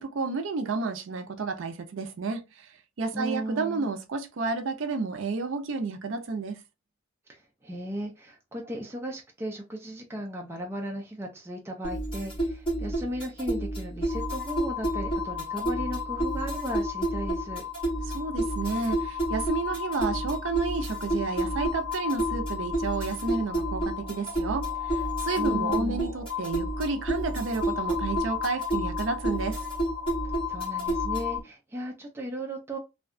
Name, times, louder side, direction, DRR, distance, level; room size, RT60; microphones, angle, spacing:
voice 1, 0.0-2.7 3.0-6.6 18.1-29.6, right 4 dB, 80° right, 0.5 m, -31 dB
voice 2, 3.1-3.9 7.3-17.6 25.4-26.0 30.5-32.8, right 1 dB, 15° right, 0.4 m, -36 dB
sound 1, 11.8-31.4, right 1 dB, 30° left, 1.3 m, -31 dB
sound 2, 14.1-31.4, left 9 dB, 80° left, 0.8 m, -35 dB
2.7 x 2.2 x 2.4 m
head